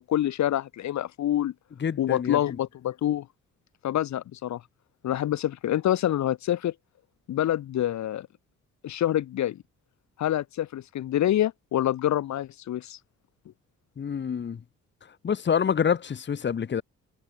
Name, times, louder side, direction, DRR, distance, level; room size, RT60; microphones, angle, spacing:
voice 1, 0.0-1.5 2.0-3.3 3.8-4.6 5.0-6.7 7.3-8.3 8.8-9.6 10.2-13.0, left 12 dB, 65° left, 1.3 m, -26 dB
voice 2, 1.8-2.6 14.0-14.6 15.2-16.8, left 7 dB, 35° left, 1.3 m, -27 dB
cardioid pair, 90°, 30 cm